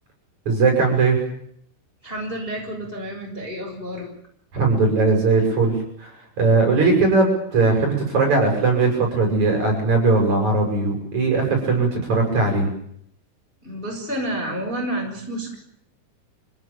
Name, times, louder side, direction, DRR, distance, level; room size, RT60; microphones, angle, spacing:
voice 1, 0.5-1.2 4.5-5.7 6.0-12.7, right 3 dB, 35° right, 2 dB, 8.9 m, -19 dB
voice 2, 2.0-4.1 13.6-15.6, right 1 dB, 10° left, 0 dB, 6.4 m, -29 dB
27.5 x 17.5 x 9.1 m, 0.69 s
omnidirectional pair, 6.0 m